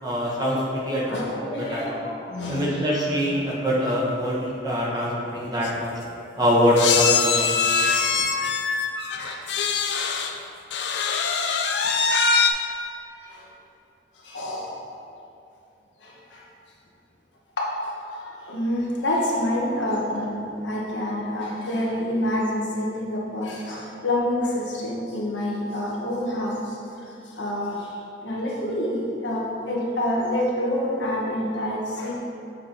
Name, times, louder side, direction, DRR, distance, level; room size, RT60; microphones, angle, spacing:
voice 1, 0.0-1.8 2.5-5.9 6.3-7.5, equal, 20° right, -6 dB, 1.2 m, -24 dB
voice 2, 1.0-2.6 9.2-9.4 11.9-12.0 14.3-14.7 17.6-17.7 18.5-26.6 27.4-27.7 28.2-32.2, left 1 dB, 85° left, -4 dB, 1.3 m, -27 dB
sound 1, 5.3-5.4 5.6-5.8 6.8-10.3 10.7-12.5, left 5 dB, 70° left, 0.5 m, -23 dB
7.0 x 4.3 x 4.4 m, 2.7 s
head